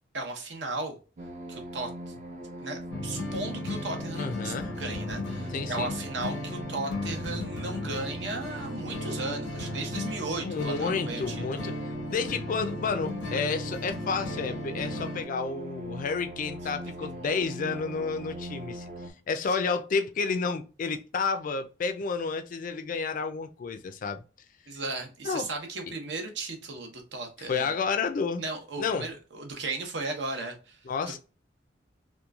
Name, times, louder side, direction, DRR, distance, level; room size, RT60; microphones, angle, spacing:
voice 1, 0.1-1.0 1.5-2.1 2.6-11.7 17.0-17.1 19.5-19.6 24.7-27.7 28.4-30.8 31.1-31.2, right 3 dB, 70° right, 0.8 m, -36 dB
sound 1, 1.2-19.1, right 1 dB, 45° right, 0.6 m, -41 dB
sound 2, 2.9-15.2, left 2 dB, 85° left, 0.6 m, -36 dB
voice 2, 4.2-4.8 5.5-5.9 10.4-11.8 12.1-18.9 19.3-24.2 25.2-25.4 27.5-28.4 28.8-29.1 30.9-31.2, left 5 dB, 50° left, 0.4 m, -30 dB
2.9 x 2.3 x 2.3 m
head